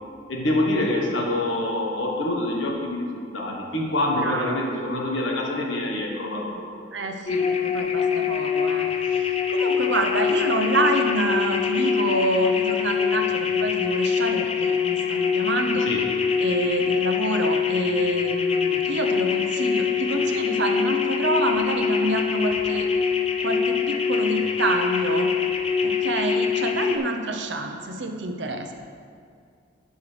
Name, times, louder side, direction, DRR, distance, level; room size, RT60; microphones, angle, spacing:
voice 1, 0.3-6.6 15.8-16.0, left 1 dB, 80° left, -1 dB, 1.3 m, -26 dB
voice 2, 4.2-4.6 6.9-15.9 16.4-22.9 23.4-25.3 25.8-28.7, right 2 dB, 70° right, 4 dB, 0.7 m, -27 dB
sound 1, 7.3-27.0, left 7 dB, 30° left, 0.4 m, -24 dB
11.0 x 5.6 x 3.3 m, 2.2 s
head